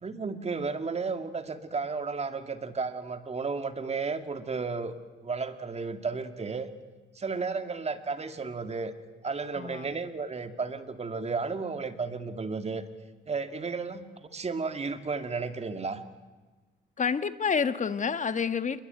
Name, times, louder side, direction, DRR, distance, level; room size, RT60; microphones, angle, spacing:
voice 1, 0.0-4.9 5.2-6.7 7.2-8.9 9.2-12.8 13.3-16.0, right 4 dB, 35° right, 8 dB, 2.4 m, -33 dB
voice 2, 9.5-9.9 17.0-18.8, left 6 dB, 40° left, 11 dB, 1.6 m, -28 dB
28.5 x 22.0 x 9.2 m, 1.3 s
cardioid pair, 90°, 20 cm